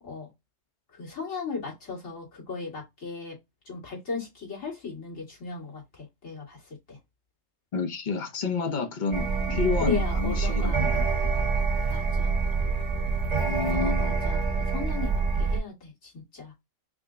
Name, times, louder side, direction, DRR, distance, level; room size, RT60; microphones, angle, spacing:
voice 1, 0.9-3.4 3.7-7.0 9.5-10.9 11.9-12.4 13.7-15.1 15.4-16.5, left 4 dB, 80° left, 2.5 m, -37 dB
voice 2, 7.7-11.4 13.4-14.1, left 5 dB, 45° left, 0.8 m, -30 dB
sound 1, 9.1-15.6, right 4 dB, 35° right, 1.3 m, -26 dB
4.8 x 2.1 x 3.7 m
omnidirectional pair, 1.3 m